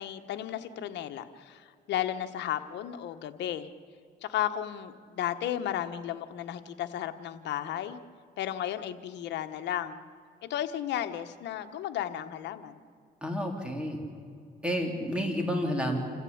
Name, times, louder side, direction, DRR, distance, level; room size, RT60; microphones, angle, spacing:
voice 1, 0.0-3.7 4.2-8.0 8.4-10.0 10.4-12.8, left 11 dB, 75° left, 9 dB, 1.3 m, -34 dB
voice 2, 13.2-14.0 14.6-16.0, equal, 5° right, 2 dB, 3.7 m, -30 dB
27.5 x 15.0 x 8.8 m, 2.3 s
cardioid pair, 105°, 18 cm